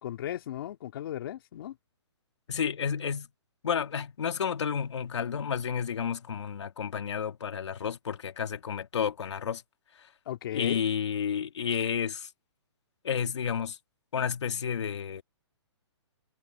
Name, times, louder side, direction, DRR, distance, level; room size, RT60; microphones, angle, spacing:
voice 1, 0.0-1.8 10.3-10.8, left 12 dB, 50° left, 2.2 m, -36 dB
voice 2, 2.5-3.3 3.6-9.6 10.5-12.3 13.0-13.8 14.1-15.2, left 7 dB, 75° left, 2.7 m, -31 dB
hypercardioid pair, 150°, 15 cm